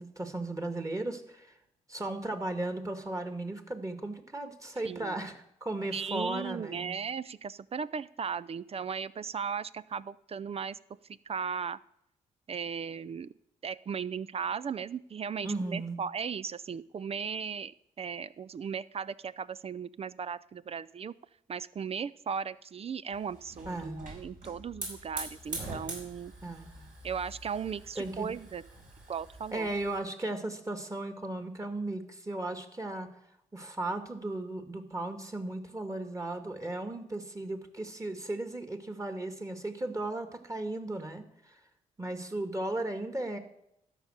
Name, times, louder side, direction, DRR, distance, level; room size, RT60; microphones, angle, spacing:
voice 1, 0.0-1.5 1.9-6.9 15.4-16.0 23.7-24.0 26.4-26.8 28.0-28.3 29.5-33.1 33.5-41.6 42.0-43.4, right 2 dB, 20° right, 7 dB, 2.0 m, -36 dB
voice 2, 5.9-10.8 11.1-11.8 12.5-13.3 13.6-21.1 21.5-26.3 27.0-28.6 29.1-29.7, right 6 dB, 35° right, 16 dB, 0.5 m, -37 dB
Hiss / Fire, 23.1-30.0, right 2 dB, 55° right, 4.8 m, -44 dB
13.0 x 5.4 x 8.0 m, 0.78 s
hypercardioid pair, 45°, 17 cm